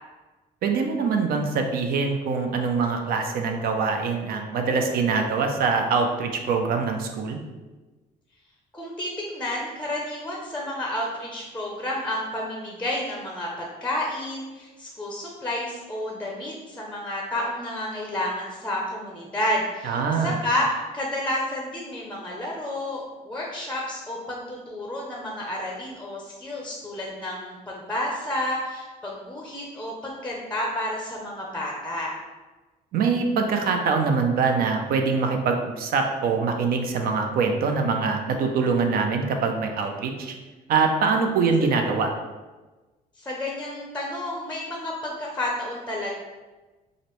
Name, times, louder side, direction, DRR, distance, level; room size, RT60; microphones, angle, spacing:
voice 1, 0.6-7.4 19.8-20.4 32.9-40.3 40.7-42.1, right 4 dB, 60° right, 4 dB, 0.5 m, -24 dB
voice 2, 8.7-32.1 41.6-41.7 43.2-46.1, left 1 dB, 5° left, -2 dB, 0.6 m, -30 dB
4.9 x 2.1 x 3.0 m, 1.2 s
cardioid pair, 110°, 17 cm